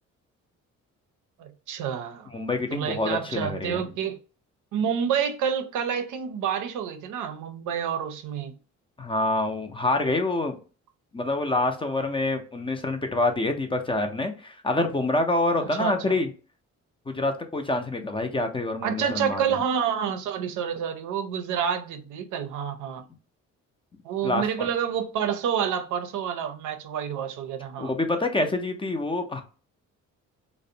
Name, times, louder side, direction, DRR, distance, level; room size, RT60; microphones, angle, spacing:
voice 1, 1.4-2.3 2.7-4.2 4.7-8.6 15.6-16.0 18.8-23.0 24.0-27.9, right 8 dB, 80° right, 0.5 m, -28 dB
voice 2, 2.3-3.9 9.0-10.6 11.1-16.3 17.1-19.6 24.2-24.7 27.8-29.4, left 2 dB, 20° left, 0.4 m, -26 dB
2.4 x 2.1 x 2.6 m
cardioid pair, 90°, 30 cm